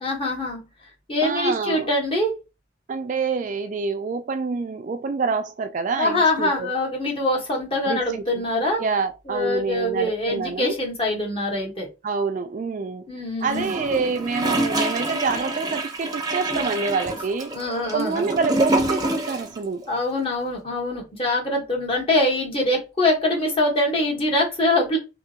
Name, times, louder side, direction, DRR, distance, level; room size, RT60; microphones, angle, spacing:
voice 1, 0.0-0.6 1.1-2.3 6.0-8.8 9.3-11.9 13.1-13.7 17.5-18.3 19.9-25.0, left 1 dB, 30° left, 1.2 m, -24 dB
voice 2, 1.2-1.9 2.9-6.7 7.9-8.5 8.8-10.8 12.0-13.1 13.4-17.5 17.9-19.9, right 4 dB, 40° right, 0.3 m, -27 dB
Gurgling / Toilet flush, 13.5-19.6 19.8-19.9, right 1 dB, 20° right, 0.7 m, -26 dB
3.6 x 2.9 x 2.8 m
head